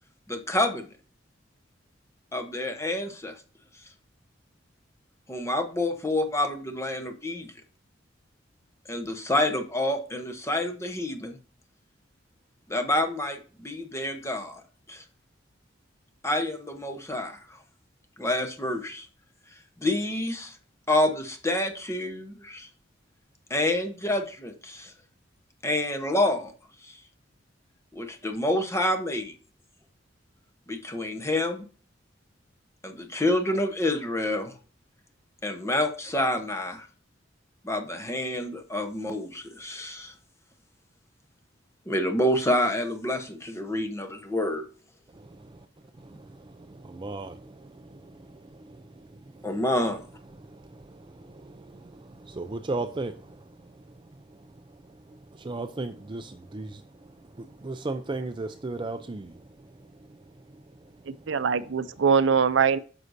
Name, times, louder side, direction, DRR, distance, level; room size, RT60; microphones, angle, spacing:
voice 1, 0.3-0.9 2.3-3.3 5.3-7.5 8.9-11.4 12.7-14.6 14.9-15.0 16.2-17.4 18.2-19.1 19.8-20.5 20.9-22.7 23.5-24.9 25.6-26.5 27.9-29.3 30.7-31.6 32.8-34.5 35.4-36.9 37.6-40.1 41.9-44.6 49.4-50.0, left 1 dB, 15° left, 0.9 m, -28 dB
voice 2, 45.1-45.7 46.0-49.6 50.3-61.3, right 2 dB, 25° right, 0.4 m, -38 dB
voice 3, 61.1-62.8, right 6 dB, 80° right, 0.5 m, -23 dB
9.4 x 6.4 x 2.6 m
head